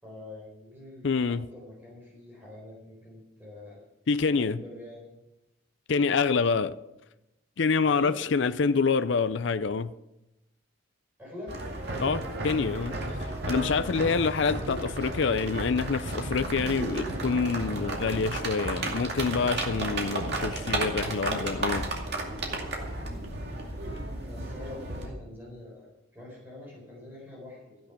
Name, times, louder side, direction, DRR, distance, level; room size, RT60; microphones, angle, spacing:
voice 1, 0.0-3.8 4.3-5.1 7.8-8.1 11.2-11.5 11.8-12.6 21.0-21.6 23.1-23.4 24.2-27.8, left 1 dB, 10° right, 4.2 m, -45 dB
voice 2, 1.0-1.4 4.1-4.6 5.9-6.7 7.6-9.9 12.0-13.0 13.5-21.9, left 5 dB, 60° left, 0.5 m, -26 dB
sound 1, 11.5-25.1, right 2 dB, 50° right, 2.4 m, -33 dB
14.0 x 10.0 x 5.8 m
head